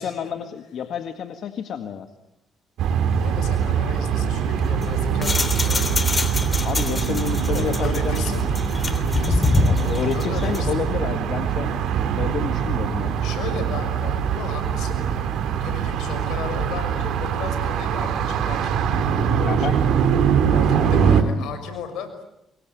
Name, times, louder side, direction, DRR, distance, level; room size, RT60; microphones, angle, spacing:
voice 1, 0.0-2.1 6.6-8.2 9.6-11.8 12.2-13.2 19.4-19.7 20.8-21.1, left 8 dB, 70° left, 8 dB, 1.8 m, -29 dB
sound 1, 2.8-21.2, right 8 dB, 80° right, 3.0 m, -23 dB
voice 2, 3.1-6.0 7.5-8.4 8.9-10.7 13.2-19.7 20.5-22.2, left 6 dB, 85° left, 9 dB, 6.3 m, -35 dB
sound 2, 4.6-10.8, left 3 dB, 30° left, 3.3 m, -25 dB
26.5 x 22.5 x 9.4 m, 0.87 s
cardioid pair, 90°, 0 cm